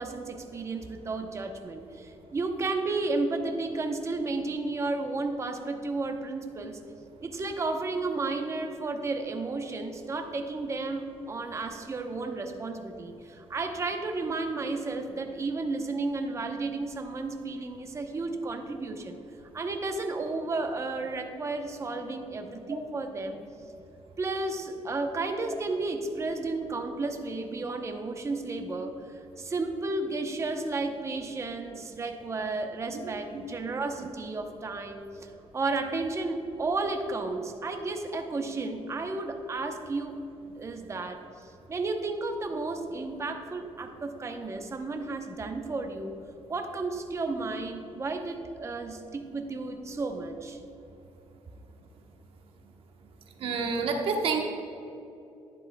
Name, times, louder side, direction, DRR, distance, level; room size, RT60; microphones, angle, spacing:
voice 1, 0.0-6.8 7.2-19.2 19.5-23.4 24.2-40.2 40.6-41.2 41.7-46.2 46.5-50.6, right 3 dB, 30° right, 5 dB, 0.8 m, -33 dB
voice 2, 53.4-54.4, right 4 dB, 65° right, 2 dB, 1.1 m, -28 dB
11.5 x 10.0 x 2.2 m, 2.9 s
cardioid pair, 115°, 10 cm